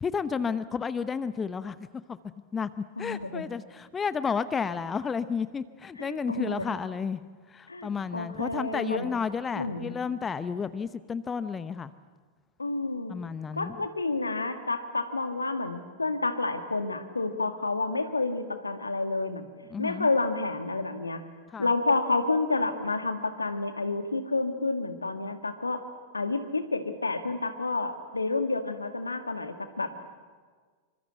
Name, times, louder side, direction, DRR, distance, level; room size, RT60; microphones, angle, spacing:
voice 1, 0.0-1.8 2.1-2.2 2.5-11.9 13.1-13.8 19.7-20.1 21.5-21.7, left 6 dB, 20° left, 14 dB, 0.8 m, -32 dB
voice 2, 3.0-3.5 6.0-6.8 7.7-9.1 9.6-9.9 12.6-13.1 13.5-19.5 19.8-21.2 21.6-25.8 26.1-29.9, left 3 dB, 80° left, 8 dB, 2.0 m, -29 dB
28.0 x 25.0 x 8.2 m, 1.5 s
figure-of-eight pair, 90°, 0 cm